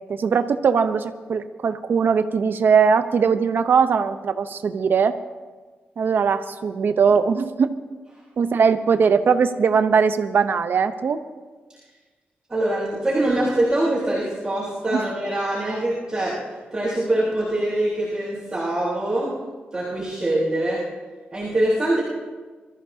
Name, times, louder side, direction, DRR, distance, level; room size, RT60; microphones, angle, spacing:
voice 1, 0.0-5.1 6.0-7.7 8.4-11.2 14.9-15.0, right 6 dB, 60° right, 10 dB, 0.8 m, -20 dB
voice 2, 12.5-16.4 16.7-19.4 19.7-20.8 21.3-22.0, right 1 dB, 20° right, -8 dB, 3.7 m, -23 dB
23.0 x 14.0 x 2.8 m, 1.4 s
wide cardioid pair, 140°, 4 cm